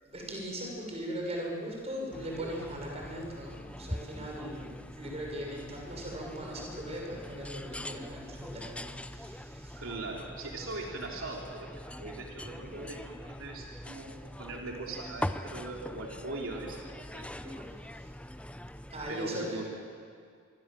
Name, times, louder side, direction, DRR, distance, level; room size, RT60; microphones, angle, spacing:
voice 1, 0.0-9.8 17.9-18.1 18.9-19.6, equal, 30° right, 0 dB, 6.4 m, -39 dB
sound 1, 2.1-19.1, left 1 dB, 5° left, 0.6 m, -43 dB
voice 2, 9.8-16.8 17.1-17.8 19.1-19.7, right 2 dB, 80° right, -1 dB, 3.4 m, -40 dB
26.5 x 24.0 x 7.6 m, 2.2 s
head